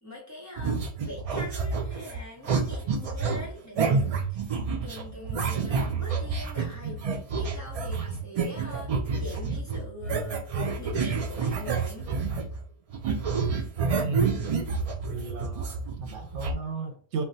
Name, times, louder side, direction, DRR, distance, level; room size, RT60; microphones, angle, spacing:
voice 1, 0.0-7.1 7.3-10.4 10.8-12.1, left 1 dB, 15° left, 0.8 m, -43 dB
sound 1, 0.6-12.6 12.9-16.5, right 5 dB, 60° right, 0.3 m, -29 dB
voice 2, 14.0-14.6 15.1-17.3, right 4 dB, 75° right, 0.9 m, -34 dB
2.3 x 2.1 x 3.9 m
omnidirectional pair, 1.2 m